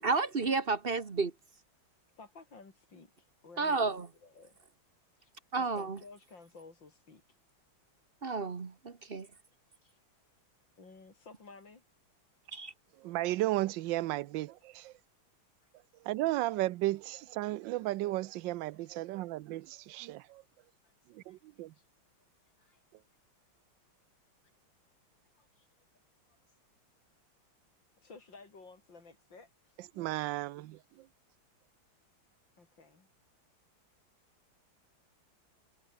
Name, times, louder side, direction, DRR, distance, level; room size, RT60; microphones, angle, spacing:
voice 1, 0.0-1.3 3.6-4.1 5.5-6.0 8.2-9.3 12.5-12.7, right 4 dB, 35° right, 1.2 m, -31 dB
voice 2, 2.2-3.9 4.2-4.5 5.2-7.4 9.1-9.2 9.7-10.0 10.8-11.8 15.6-15.7 18.8-18.9 20.8-21.9 22.4-22.8 25.3-25.8 26.5-26.6 28.0-29.9 32.6-33.1, left 4 dB, 60° left, 4.8 m, -55 dB
voice 3, 13.0-14.9 16.1-20.4 21.1-21.7 30.0-30.8, right 17 dB, 75° right, 1.2 m, -34 dB
omnidirectional pair, 2.2 m